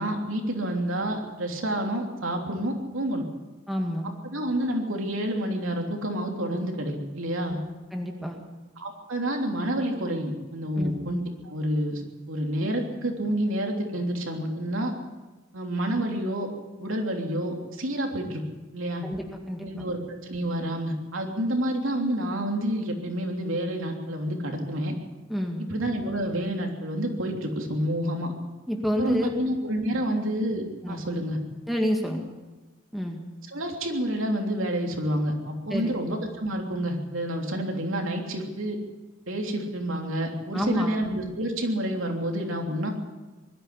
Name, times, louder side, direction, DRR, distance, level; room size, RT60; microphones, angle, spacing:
voice 1, 0.0-3.3 4.3-7.6 8.8-12.0 12.3-14.9 15.5-16.5 16.8-18.4 18.7-19.0 19.6-24.9 25.6-28.3 29.0-31.4 33.5-38.8 39.3-42.9, right 1 dB, 70° right, 2 dB, 3.3 m, -29 dB
voice 2, 3.7-4.1 7.5-7.6 7.9-8.4 10.8-11.0 19.0-19.8 25.3-25.7 28.7-29.3 29.9-30.0 30.8-31.0 31.7-32.2 32.9-33.2 35.7-36.0 40.5-41.0, equal, ahead, 1 dB, 2.1 m, -29 dB
21.0 x 12.5 x 9.9 m, 1.2 s
head